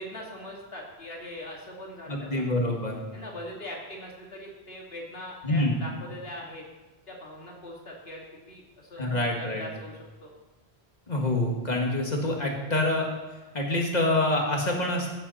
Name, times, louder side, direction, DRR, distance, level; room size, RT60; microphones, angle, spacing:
voice 1, 0.0-2.5 3.1-6.6 7.1-10.3, left 1 dB, 70° left, -2 dB, 2.6 m, -41 dB
voice 2, 2.1-3.0 5.4-5.8 9.0-9.7 11.1-13.1 13.5-15.1, left 1 dB, 45° left, 0 dB, 2.1 m, -26 dB
16.0 x 8.7 x 4.2 m, 1.1 s
omnidirectional pair, 1.1 m